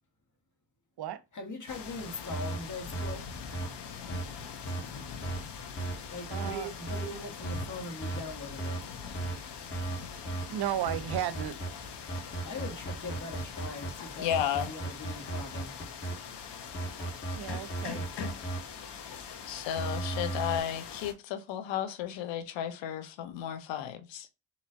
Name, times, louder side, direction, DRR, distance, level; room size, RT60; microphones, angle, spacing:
voice 1, 1.3-3.3 6.1-8.8 12.4-14.3 14.7-15.8, left 2 dB, 40° left, 1.6 m, -41 dB
sound 1, 1.7-21.1, left 6 dB, 65° left, 1.2 m, -43 dB
sound 2, 2.3-2.6 2.9-3.1 3.5-3.7 4.1-4.2 4.7-4.8 5.2-5.4 5.8-5.9 6.3-6.5 6.9-7.1 7.4-7.6 8.0-8.2 8.6-8.8 9.1-9.4 9.7-10.0 10.3-10.4 10.9-11.7 12.1-13.9 14.3-16.1 16.7-18.6 19.8-20.6, right 3 dB, 25° left, 1.5 m, -35 dB
voice 2, 6.3-6.7 10.5-11.6 17.3-18.1, right 11 dB, 60° right, 0.7 m, -34 dB
voice 3, 14.2-14.8 19.5-24.3, left 10 dB, 80° left, 0.9 m, -33 dB
4.2 x 2.9 x 3.8 m
supercardioid pair, 50°, 44 cm